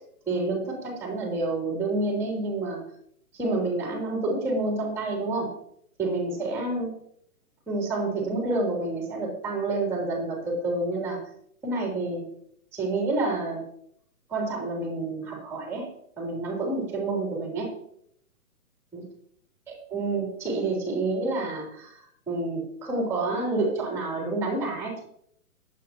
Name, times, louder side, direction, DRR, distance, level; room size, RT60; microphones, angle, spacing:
voice 1, 0.3-2.8 3.3-5.5 6.0-6.9 7.7-11.2 11.6-12.2 12.7-13.6 14.3-15.9 16.2-17.7 18.9-19.0 19.9-25.0, right 2 dB, 5° right, -1 dB, 3.0 m, -28 dB
20.0 x 8.3 x 2.9 m, 0.68 s
hypercardioid pair, 150°, 44 cm